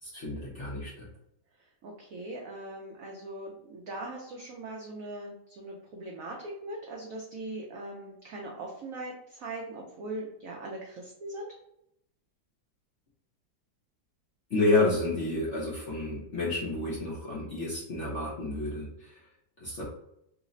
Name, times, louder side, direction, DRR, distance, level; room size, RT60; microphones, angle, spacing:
voice 1, 0.0-1.1 14.5-19.2 19.6-19.8, left 2 dB, 60° left, -5 dB, 0.7 m, -30 dB
voice 2, 1.8-11.5, right 2 dB, 80° right, -1 dB, 0.7 m, -40 dB
3.2 x 2.0 x 3.7 m, 0.78 s
omnidirectional pair, 2.0 m